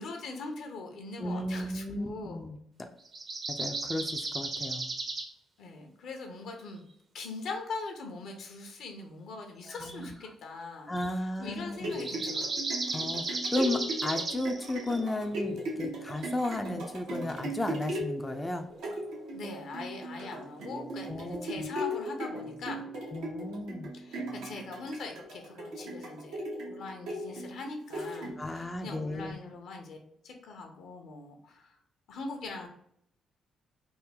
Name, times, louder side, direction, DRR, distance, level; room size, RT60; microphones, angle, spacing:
voice 1, 0.0-2.4 5.6-6.8 7.1-10.9 11.4-12.6 19.3-22.8 23.9-30.0 30.2-31.8 32.1-32.7, left 3 dB, 75° left, 3 dB, 0.8 m, -41 dB
voice 2, 1.2-2.9 3.6-4.9 9.7-10.1 10.9-11.9 12.9-18.7 21.1-21.7 23.1-23.9 28.4-29.4, left 1 dB, 20° left, 5 dB, 0.4 m, -34 dB
sound 1, 3.0-5.3 9.7-10.0 10.9-11.1 11.9-15.1 16.2-16.3, right 3 dB, 50° right, 0.8 m, -35 dB
sound 2, 11.5-28.6 29.2-29.3, right 1 dB, 85° right, 1.1 m, -38 dB
3.6 x 2.1 x 3.4 m, 0.70 s
supercardioid pair, 55°, 0 cm